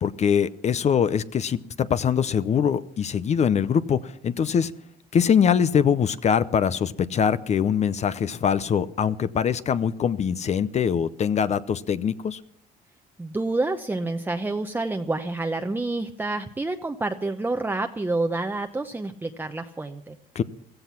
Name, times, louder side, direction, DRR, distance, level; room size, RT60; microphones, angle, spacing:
voice 1, 0.0-4.7 5.1-12.4 20.3-20.4, left 7 dB, 40° left, 15 dB, 0.7 m, -23 dB
voice 2, 13.2-20.2, right 2 dB, 10° right, 5 dB, 0.8 m, -28 dB
15.5 x 15.0 x 5.8 m, 0.64 s
cardioid pair, 110°, 17 cm